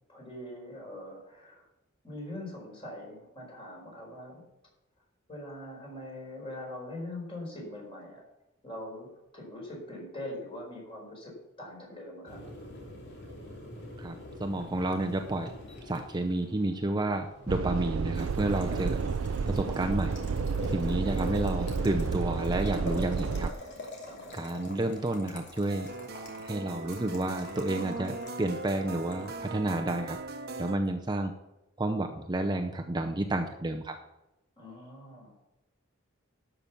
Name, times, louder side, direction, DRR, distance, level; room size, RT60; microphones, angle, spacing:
voice 1, 0.1-1.6 2.0-4.4 5.3-8.2 8.6-9.1 9.3-12.4 18.7-18.9 24.0-24.5 34.6-35.3, left 1 dB, 25° left, -2 dB, 4.8 m, -42 dB
Boiling, 12.3-30.2, left 1 dB, 55° left, 2.9 m, -45 dB
voice 2, 14.0-15.5 15.8-19.0 19.5-20.1 20.7-23.5 24.3-25.9 26.4-30.2 30.6-31.3 31.8-34.0, right 1 dB, 20° right, 4 dB, 0.6 m, -30 dB
sound 1, 17.5-23.5, right 5 dB, 75° right, 0.4 m, -31 dB
sound 2, 25.7-30.8, right 3 dB, 50° right, 1.0 m, -40 dB
12.0 x 6.0 x 7.0 m, 0.96 s
head